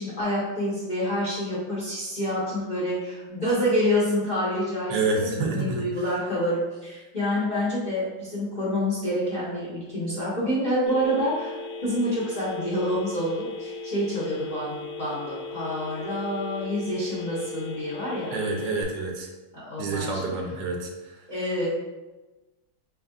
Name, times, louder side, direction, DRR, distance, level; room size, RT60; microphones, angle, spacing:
voice 1, 0.0-11.5 11.8-18.4 19.5-20.3 21.3-21.7, equal, 40° left, -8 dB, 0.7 m, -27 dB
voice 2, 4.9-6.1 18.3-19.3 19.8-21.2, right 3 dB, 80° right, 1 dB, 1.3 m, -28 dB
Telephone, 10.9-18.8, left 3 dB, 65° left, 0.8 m, -37 dB
4.1 x 3.6 x 2.3 m, 1.1 s
omnidirectional pair, 2.0 m